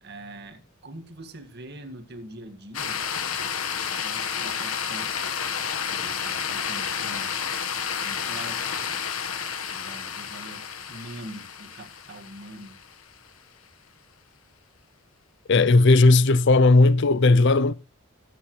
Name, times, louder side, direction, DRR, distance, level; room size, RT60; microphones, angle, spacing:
voice 1, 0.0-3.0 4.0-5.3 5.9-7.4 8.0-8.8 9.7-12.8, right 1 dB, 50° right, 2.0 m, -43 dB
sound 1, 2.7-13.0, left 7 dB, 75° left, 1.5 m, -31 dB
voice 2, 15.5-17.7, left 3 dB, 55° left, 0.5 m, -16 dB
20.0 x 8.6 x 3.2 m
head